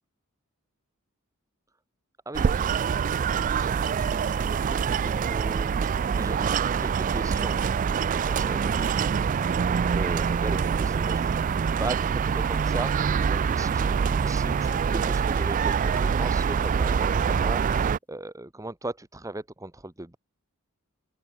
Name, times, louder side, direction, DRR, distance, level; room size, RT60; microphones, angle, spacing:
voice 1, 2.2-2.8 3.6-5.9 6.2-7.7 8.0-11.4 11.8-14.0 14.2-20.2, right 2 dB, 15° right, 1.2 m, -38 dB
sound 1, 2.3-18.0, right 6 dB, 40° right, 0.3 m, -25 dB
sound 2, 13.2-16.5 16.8-17.8, left 1 dB, 10° left, 1.8 m, -52 dB
open air
head